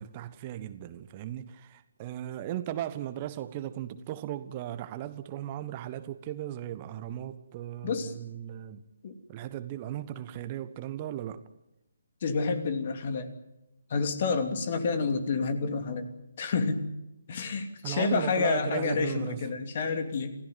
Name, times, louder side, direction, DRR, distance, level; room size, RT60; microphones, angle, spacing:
voice 1, 0.0-8.9 9.3-11.4 17.8-19.5, right 12 dB, 30° right, 1.3 m, -37 dB
voice 2, 7.8-8.1 9.0-9.1 12.2-13.3 13.9-16.1 16.4-16.9 17.3-20.4, left 4 dB, 40° left, 2.9 m, -29 dB
28.0 x 16.5 x 9.4 m
figure-of-eight pair, 145°, 0 cm